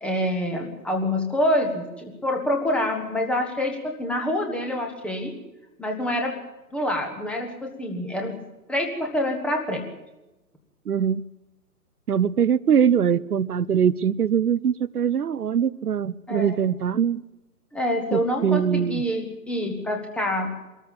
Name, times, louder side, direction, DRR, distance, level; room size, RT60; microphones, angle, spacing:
voice 1, 0.0-5.4 5.8-6.4 6.7-8.4 8.7-9.9 16.3-16.6 17.7-20.5, left 1 dB, ahead, 2 dB, 1.1 m, -26 dB
voice 2, 10.9-11.2 12.1-17.2 18.1-19.0, right 8 dB, 70° right, 17 dB, 0.7 m, -22 dB
23.5 x 13.5 x 8.8 m, 1.0 s
figure-of-eight pair, 130°, 47 cm